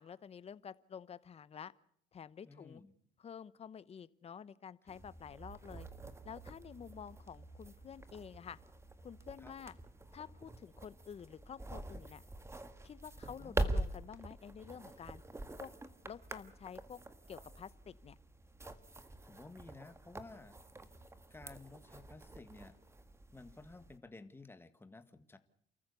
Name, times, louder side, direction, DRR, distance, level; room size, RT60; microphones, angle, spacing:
voice 1, 0.0-1.7 2.1-2.8 3.2-5.9 6.2-8.6 9.0-9.8 10.1-12.2 12.8-15.2 15.6-15.7 16.0-17.0 17.3-18.2, left 7 dB, 35° left, 17 dB, 0.9 m, -50 dB
voice 2, 2.4-2.9 9.4-9.5 13.2-13.5 19.2-20.6 21.3-22.8 23.3-25.4, left 3 dB, 15° left, 10 dB, 1.7 m, -54 dB
sound 1, 4.9-24.0, right 2 dB, 15° right, 1.6 m, -45 dB
29.0 x 14.0 x 8.2 m, 0.67 s
cardioid pair, 110°, 17 cm